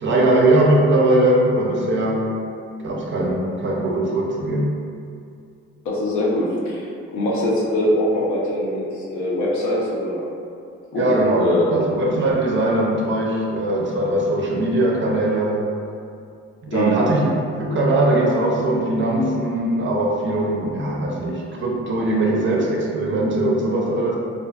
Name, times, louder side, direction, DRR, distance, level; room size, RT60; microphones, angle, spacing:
voice 1, 0.0-2.3 2.8-4.8 10.9-15.7 16.6-17.3 17.6-24.2, right 1 dB, 40° right, -2 dB, 0.5 m, -20 dB
voice 2, 5.8-6.9 7.1-10.2 10.9-11.7 16.7-17.0, left 1 dB, 70° left, -4 dB, 0.6 m, -22 dB
2.5 x 2.4 x 2.3 m, 2.4 s
cardioid pair, 90°, 30 cm